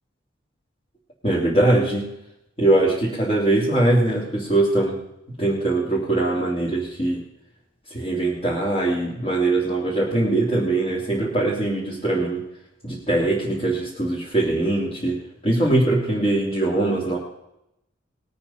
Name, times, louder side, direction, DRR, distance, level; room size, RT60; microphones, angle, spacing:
voice 1, 1.2-2.1 2.6-5.0 5.3-7.2 7.9-12.4 12.8-17.2, right 2 dB, 30° left, -6 dB, 2.9 m, -22 dB
19.5 x 8.6 x 5.7 m, 0.84 s
head